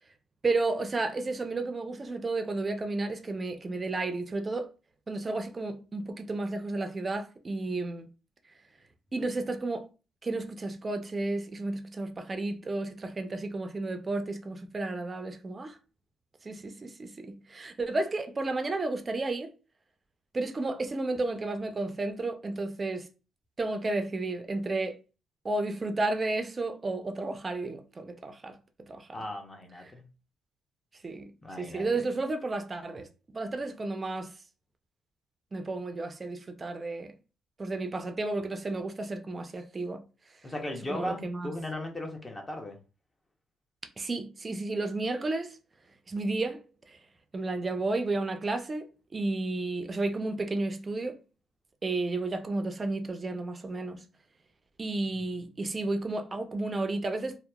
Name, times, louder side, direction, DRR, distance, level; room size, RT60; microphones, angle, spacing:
voice 1, 0.4-4.7 5.1-8.1 9.1-9.9 10.2-15.8 16.4-19.5 20.3-23.1 23.6-25.0 25.4-28.6 28.9-29.1 31.0-31.3 31.6-33.1 33.3-34.3 35.5-37.1 37.6-40.0 40.9-41.5 44.0-45.6 46.1-47.0 47.3-51.2 51.8-54.0 54.8-57.4, right 2 dB, 30° right, 0.4 m, -32 dB
voice 2, 29.1-30.0 31.4-32.0 40.4-42.8, left 1 dB, 20° left, 0.6 m, -37 dB
2.8 x 2.1 x 2.2 m
cardioid pair, 90°, 0 cm